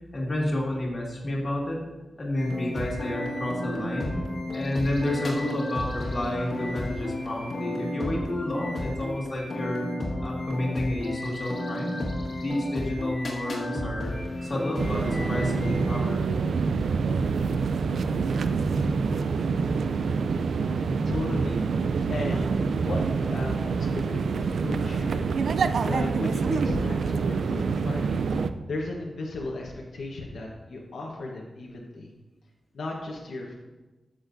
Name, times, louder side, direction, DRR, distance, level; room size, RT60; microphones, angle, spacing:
voice 1, 0.1-1.8 2.2-4.2 4.5-9.9 10.2-12.0 12.4-14.1 14.4-16.5, left 1 dB, 35° left, -3 dB, 1.9 m, -30 dB
sound 1, 2.3-15.9, left 1 dB, 50° left, 1.6 m, -32 dB
sound 2, 14.8-28.5, right 5 dB, 85° right, 0.3 m, -26 dB
voice 2, 21.0-21.6 22.1-22.5 22.8-25.3 25.8-32.1 32.7-33.5, left 2 dB, 75° left, -1 dB, 1.0 m, -35 dB
13.0 x 6.4 x 2.6 m, 1.1 s
wide cardioid pair, 155°, 0 cm